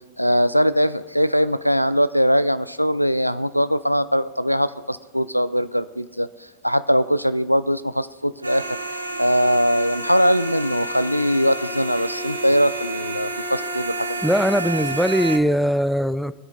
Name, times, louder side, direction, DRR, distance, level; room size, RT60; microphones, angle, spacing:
voice 1, 0.2-6.3 6.6-8.8 9.2-14.2, equal, 90° left, 0.3 m, -21 dB
sound 1, 8.4-15.4, right 2 dB, 80° right, 0.7 m, -30 dB
voice 2, 14.2-16.3, equal, ahead, 0.3 m, -20 dB
22.0 x 7.9 x 2.5 m
figure-of-eight pair, 90°, 0 cm